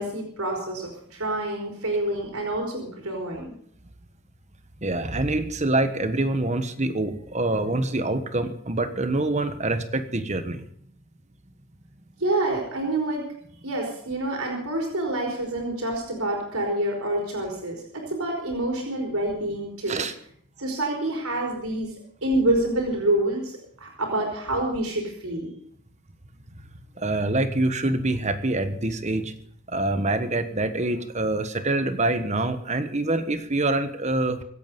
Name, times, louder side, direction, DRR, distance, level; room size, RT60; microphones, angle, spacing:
voice 1, 0.0-3.5 12.2-13.2 13.6-20.0 20.6-21.9 22.2-23.5 23.8-25.5, right 1 dB, 90° right, 0 dB, 4.2 m, -27 dB
voice 2, 4.8-10.6 19.9-20.1 27.0-29.3 29.7-34.4, right 2 dB, 35° right, 9 dB, 1.3 m, -25 dB
25.0 x 8.5 x 5.4 m, 0.63 s
head